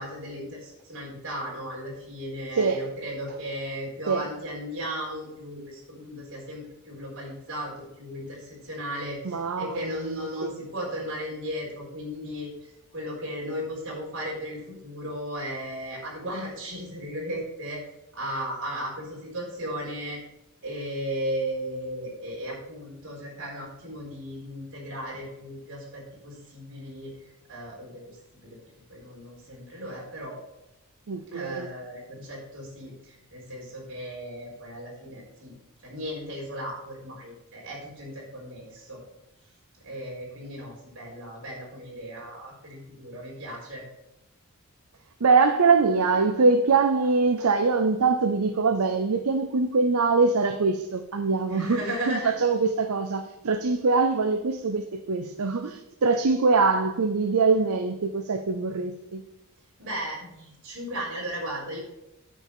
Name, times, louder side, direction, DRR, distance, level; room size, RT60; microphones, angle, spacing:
voice 1, 0.0-17.8 18.1-20.2 20.6-28.2 28.4-28.6 28.9-30.4 31.3-35.5 35.8-39.0 39.8-43.8 51.5-52.4 59.8-61.8, equal, 60° right, 4.2 m, -36 dB
voice 2, 9.2-9.8 10.0-10.5 31.1-31.7 45.2-59.2, right 4 dB, 85° right, 0.6 m, -23 dB
9.7 x 5.3 x 6.7 m
head